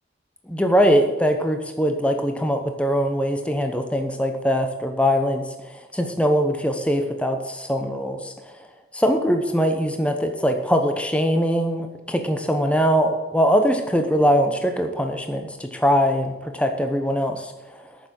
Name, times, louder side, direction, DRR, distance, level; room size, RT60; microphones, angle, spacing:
voice 1, 0.5-5.5 5.9-8.3 8.9-17.5, equal, 5° left, 5 dB, 0.9 m, -22 dB
9.2 x 6.9 x 7.7 m, 1.1 s
head